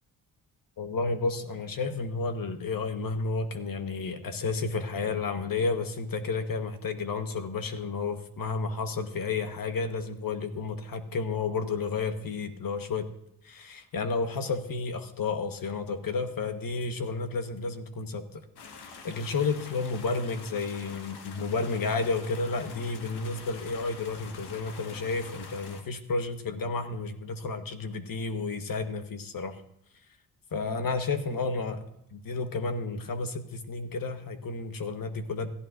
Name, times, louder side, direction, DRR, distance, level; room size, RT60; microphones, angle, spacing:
voice 1, 0.8-13.1 13.4-18.4 19.0-29.6 30.5-31.8 32.1-35.5, left 4 dB, 60° left, 7 dB, 1.3 m, -31 dB
sound 1, 18.6-25.8, left 4 dB, 80° left, 1.5 m, -46 dB
15.5 x 14.5 x 2.6 m, 0.79 s
supercardioid pair, 50°, 39 cm